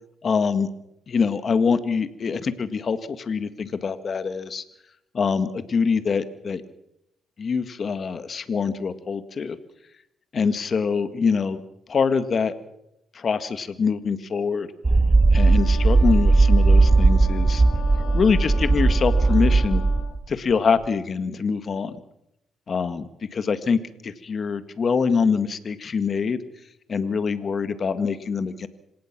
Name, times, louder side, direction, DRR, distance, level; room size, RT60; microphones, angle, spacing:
voice 1, 0.2-0.7 1.1-4.6 5.1-6.6 7.4-9.6 10.3-11.6 11.9-12.5 13.1-14.7 15.3-17.6 18.1-19.8 20.3-22.0 22.7-26.4 26.9-28.7, left 5 dB, 45° left, 11 dB, 1.9 m, -24 dB
sound 1, 14.9-20.2, right 3 dB, 25° right, 1.0 m, -17 dB
Wind instrument woodwind instrument, 15.3-20.2, left 9 dB, 75° left, 1.5 m, -39 dB
26.5 x 17.5 x 6.2 m, 0.81 s
cardioid pair, 90°, 0 cm